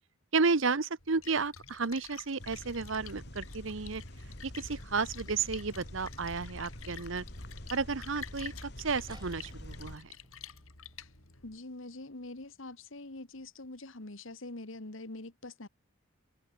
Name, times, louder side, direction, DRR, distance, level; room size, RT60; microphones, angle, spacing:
voice 1, 0.3-4.0 4.4-7.2 7.7-10.1, right 4 dB, 70° right, 1.0 m, -32 dB
Splash splatter, 1.0-11.6, left 8 dB, 90° left, 7.4 m, -50 dB
sound 1, 2.4-10.0, left 1 dB, 50° left, 4.8 m, -46 dB
sound 2, 9.1-14.0, right 2 dB, 20° right, 7.3 m, -62 dB
voice 2, 11.4-15.7, left 2 dB, 70° left, 1.9 m, -44 dB
head